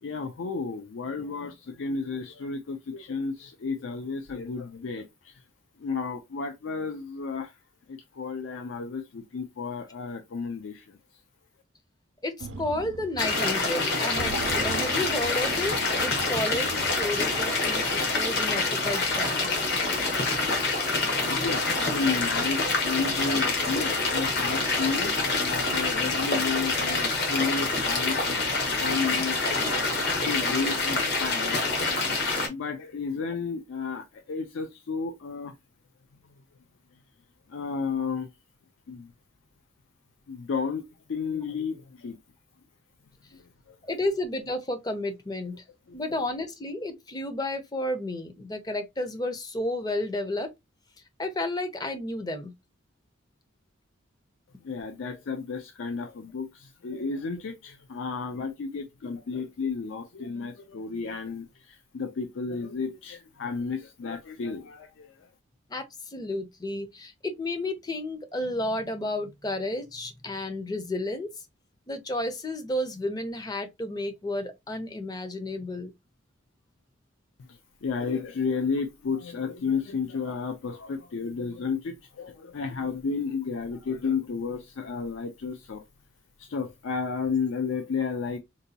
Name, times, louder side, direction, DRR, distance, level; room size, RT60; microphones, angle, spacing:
voice 1, 0.0-5.4 5.8-7.6 7.9-11.0 21.2-29.4 30.3-31.6 32.5-35.5 37.5-38.3 38.9-39.1 40.3-42.2 43.7-43.8 45.9-46.0 54.6-65.1 77.8-85.8 86.4-88.4, left 5 dB, 70° left, 0.4 m, -32 dB
voice 2, 12.2-15.7 16.0-19.5 43.9-45.6 45.9-50.5 51.2-52.5 65.7-65.8 66.1-71.3 71.9-75.9, left 1 dB, 20° left, 0.5 m, -32 dB
sound 1, 12.4-13.4 13.7-13.8 14.1-17.5, right 4 dB, 70° right, 0.5 m, -39 dB
sound 2, 13.2-32.5, left 3 dB, 55° left, 1.1 m, -26 dB
3.9 x 2.2 x 2.7 m
head